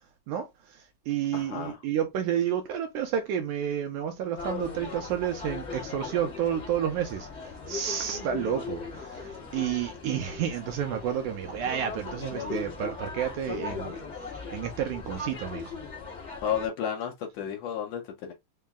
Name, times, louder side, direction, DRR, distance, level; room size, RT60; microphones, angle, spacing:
voice 1, 0.3-15.7, right 9 dB, 80° right, 1.9 m, -31 dB
voice 2, 1.3-1.8 16.4-18.3, left 8 dB, 90° left, 1.4 m, -32 dB
sound 1, 4.4-16.7, left 4 dB, 60° left, 0.7 m, -38 dB
5.4 x 2.0 x 3.5 m
omnidirectional pair, 3.9 m